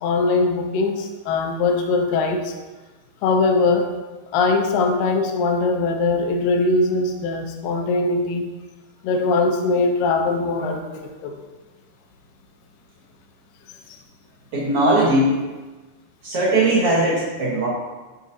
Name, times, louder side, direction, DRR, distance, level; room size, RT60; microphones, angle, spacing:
voice 1, 0.0-2.5 3.2-3.9 4.3-8.5 9.0-11.3, left 3 dB, 75° left, 4 dB, 2.2 m, -21 dB
voice 2, 14.5-15.4 16.2-17.7, right 1 dB, 70° right, -6 dB, 1.4 m, -19 dB
11.0 x 3.9 x 2.6 m, 1.2 s
omnidirectional pair, 4.3 m